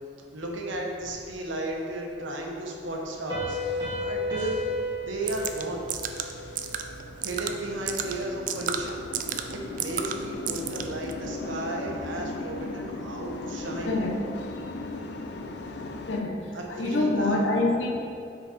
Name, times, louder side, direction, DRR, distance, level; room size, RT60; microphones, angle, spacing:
voice 1, 0.3-4.6 5.1-5.9 7.2-9.1 9.5-13.9 16.5-17.4, right 1 dB, 85° right, 0 dB, 1.1 m, -34 dB
sound 1, 1.8-16.2, left 3 dB, 60° left, 0.5 m, -40 dB
Piano, 3.3-6.7, left 1 dB, 25° right, 1.6 m, -33 dB
sound 2, 5.2-11.1, right 8 dB, 45° right, 0.3 m, -34 dB
voice 2, 13.9-14.2 16.1-17.9, left 2 dB, 80° left, 0 dB, 0.9 m, -26 dB
6.2 x 5.0 x 4.3 m, 2.4 s
head